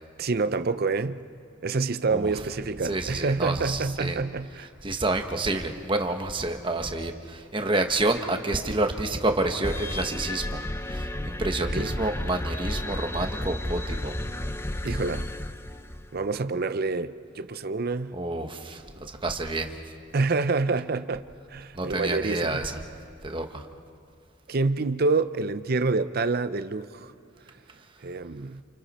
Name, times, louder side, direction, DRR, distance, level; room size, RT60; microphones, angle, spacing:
voice 1, 0.2-1.2 1.6-4.7 11.6-12.0 14.8-15.3 16.1-18.1 20.1-21.2 21.5-22.6 24.5-27.1 28.0-28.6, right 3 dB, 50° right, 0.6 m, -27 dB
voice 2, 2.8-4.2 4.8-10.6 11.2-14.2 18.1-18.8 19.2-19.7 21.7-22.7 23.2-23.6, right 2 dB, 25° right, 1.2 m, -28 dB
sound 1, 9.6-16.2, left 1 dB, 15° left, 0.5 m, -32 dB
28.5 x 28.5 x 4.3 m
head